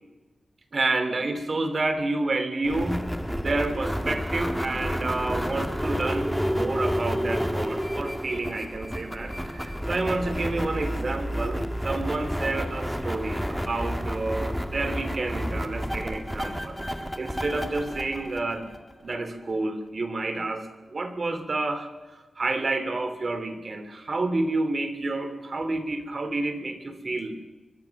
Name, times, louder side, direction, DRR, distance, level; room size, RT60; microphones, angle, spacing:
voice 1, 0.7-3.1 3.4-16.8 17.2-18.7 19.0-27.4, right 2 dB, 50° right, 9 dB, 2.8 m, -29 dB
sound 1, 2.6-19.1, equal, ahead, 1.8 m, -30 dB
24.0 x 23.0 x 5.9 m, 1.2 s
wide cardioid pair, 80°, 0 cm